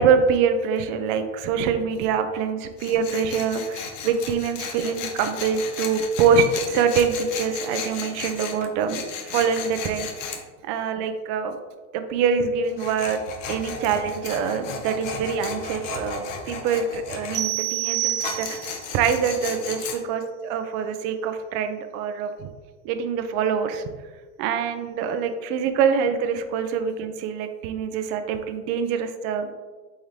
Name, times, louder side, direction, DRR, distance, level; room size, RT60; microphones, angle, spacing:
voice 1, 0.0-10.1 10.3-11.6 11.9-22.5 22.8-23.9 24.4-29.5, right 6 dB, 50° right, 8 dB, 0.6 m, -25 dB
Tools, 2.8-10.4 12.7-17.4 18.2-20.0, left 5 dB, 75° left, 0.9 m, -35 dB
sound 1, 17.3-18.9, right 14 dB, 85° right, 1.2 m, -27 dB
4.2 x 3.6 x 3.2 m, 1.3 s
hypercardioid pair, 105°, 38 cm